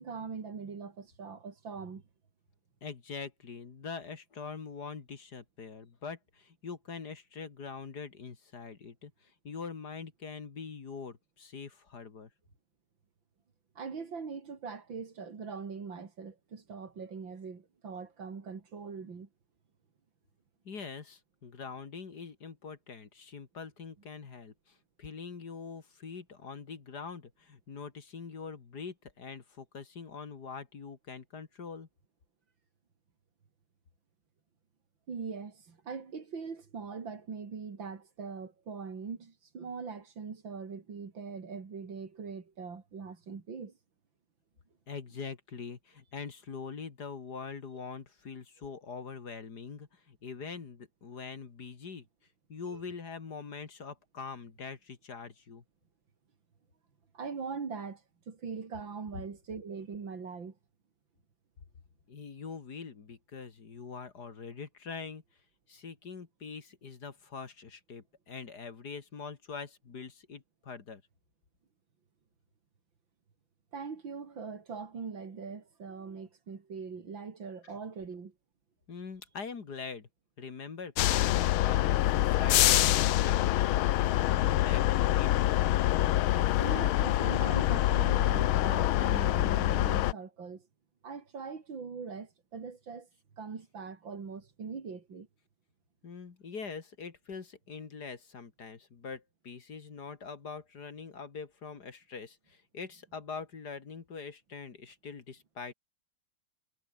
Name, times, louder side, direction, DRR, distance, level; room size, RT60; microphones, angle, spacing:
voice 1, 0.0-2.0 13.8-19.3 35.1-43.7 52.7-52.8 57.1-60.6 73.7-78.3 86.6-90.7 91.0-93.1 93.4-95.3, right 5 dB, 65° right, 3.4 m, -41 dB
voice 2, 2.8-12.3 20.6-31.9 44.9-52.0 52.5-55.6 59.1-59.2 62.1-65.2 65.7-71.0 77.6-77.8 78.9-80.1 80.4-85.3 96.0-105.7, left 5 dB, 50° left, 2.6 m, -43 dB
sound 1, 81.0-90.1, left 14 dB, 90° left, 1.6 m, -26 dB
omnidirectional pair, 2.2 m